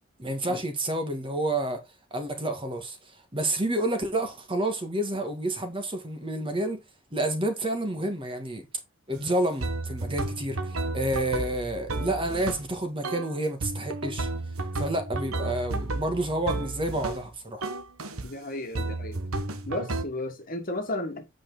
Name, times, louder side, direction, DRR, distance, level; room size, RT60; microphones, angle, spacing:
voice 1, 0.2-1.8 2.1-6.8 7.1-8.7 9.1-14.3 14.8-17.6, right 1 dB, 25° right, 1.6 m, -29 dB
sound 1, 9.1-9.2 9.6-12.7 13.0-13.3 13.6-17.3 17.6-18.3 18.8-20.0, right 2 dB, 85° right, 1.2 m, -32 dB
voice 2, 18.2-19.2 19.6-21.2, left 1 dB, 40° left, 1.7 m, -33 dB
8.6 x 5.2 x 4.0 m
head